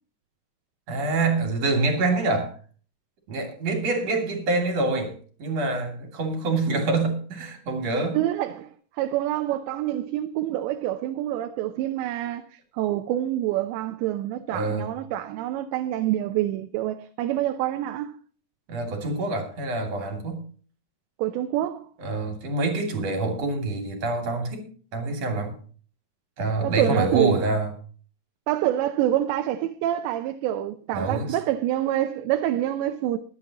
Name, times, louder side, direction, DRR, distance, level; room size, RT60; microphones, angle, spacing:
voice 1, 0.9-2.5 3.3-5.1 5.4-8.2 14.5-14.9 18.7-20.4 22.0-24.7 24.9-25.5 26.4-27.7 30.9-31.4, right 3 dB, 40° right, 3.5 m, -26 dB
voice 2, 8.1-8.7 9.0-12.4 12.7-18.2 21.2-21.9 26.6-27.3 28.5-33.2, right 13 dB, 90° right, 3.0 m, -26 dB
21.5 x 9.5 x 3.0 m
omnidirectional pair, 4.9 m